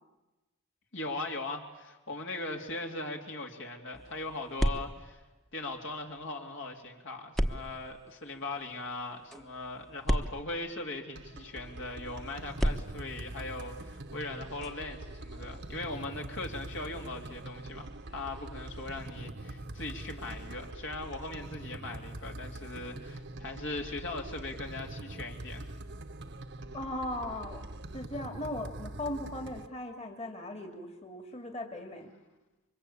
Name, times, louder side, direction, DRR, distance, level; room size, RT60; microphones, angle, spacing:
voice 1, 0.9-5.2 5.5-25.7, left 2 dB, 60° left, 2 dB, 2.9 m, -39 dB
sound 1, 3.9-6.2 7.3-11.3 12.5-19.2, equal, ahead, 1.1 m, -37 dB
sound 2, 11.2-29.7, right 1 dB, 55° right, 1.2 m, -44 dB
voice 2, 26.7-27.6 27.9-32.1, left 1 dB, 30° left, 5 dB, 2.5 m, -38 dB
28.5 x 24.5 x 8.6 m, 1.1 s
head